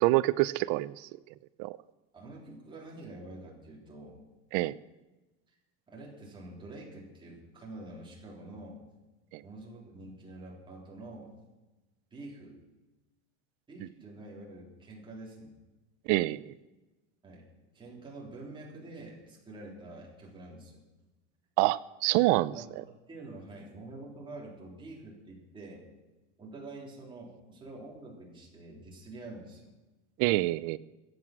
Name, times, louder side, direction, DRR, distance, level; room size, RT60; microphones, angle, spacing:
voice 1, 0.0-0.9 1.6-1.7 4.5-4.7 16.1-16.5 21.6-22.5 30.2-30.8, right 19 dB, 50° right, 16 dB, 0.5 m, -26 dB
voice 2, 2.1-4.2 5.9-8.8 9.4-11.3 12.1-12.5 13.7-15.6 17.2-20.8 22.5-25.8 26.4-29.7, right 2 dB, 15° right, -3 dB, 3.4 m, -47 dB
23.5 x 7.9 x 6.0 m, 1.1 s
cardioid pair, 160°, 37 cm